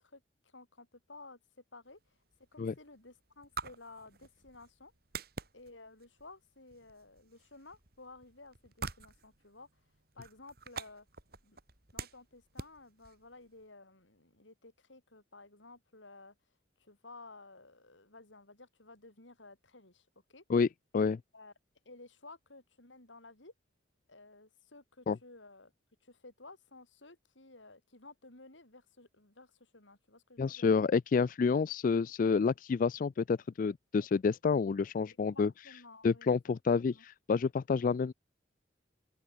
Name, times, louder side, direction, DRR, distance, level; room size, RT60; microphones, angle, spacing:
voice 1, 0.0-2.0 2.5-4.9 5.5-9.7 10.1-11.1 11.4-11.6 11.9-16.3 16.8-20.4 21.3-21.5 21.8-23.5 24.1-25.7 26.0-30.7 35.1-36.3 36.9-37.0, left 3 dB, 85° left, 6.8 m, -55 dB
sound 1, 1.9-13.7, right 4 dB, 55° right, 3.4 m, -48 dB
voice 2, 30.4-35.5 36.0-38.1, left 5 dB, 45° left, 0.3 m, -29 dB
open air
head